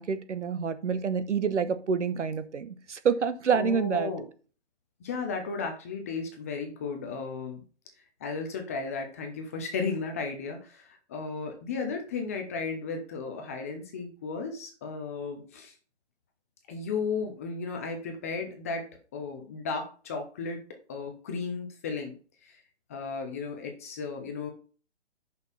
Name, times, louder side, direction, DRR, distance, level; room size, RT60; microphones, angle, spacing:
voice 1, 0.0-4.1, right 6 dB, 80° right, 1.2 m, -27 dB
voice 2, 3.5-4.2 5.0-7.6 8.2-15.7 16.7-18.8 19.1-20.6 20.9-22.1 22.4-22.6 22.9-24.5, left 4 dB, 15° left, 0.5 m, -34 dB
6.4 x 5.4 x 5.4 m
hypercardioid pair, 155°, 35 cm